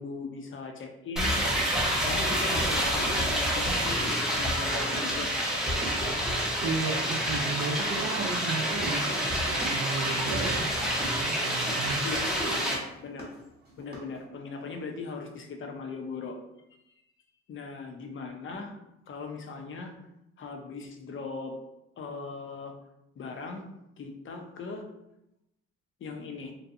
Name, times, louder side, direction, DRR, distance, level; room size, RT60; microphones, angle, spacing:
voice 1, 0.0-1.4 2.0-5.3 8.0-8.1 12.0-13.3 13.8-16.4 17.5-18.7 19.1-19.9 20.4-21.6 22.0-22.7 23.2-23.7 24.0-24.9 26.0-26.5, left 4 dB, 40° left, 4 dB, 0.5 m, -39 dB
sound 1, 1.2-12.8, equal, ahead, 0.6 m, -28 dB
sound 2, 1.5-14.2, right 1 dB, 35° right, 0.9 m, -43 dB
voice 2, 6.6-12.0, right 4 dB, 65° right, -2 dB, 0.5 m, -34 dB
2.6 x 2.2 x 2.5 m, 0.87 s
cardioid pair, 90°, 30 cm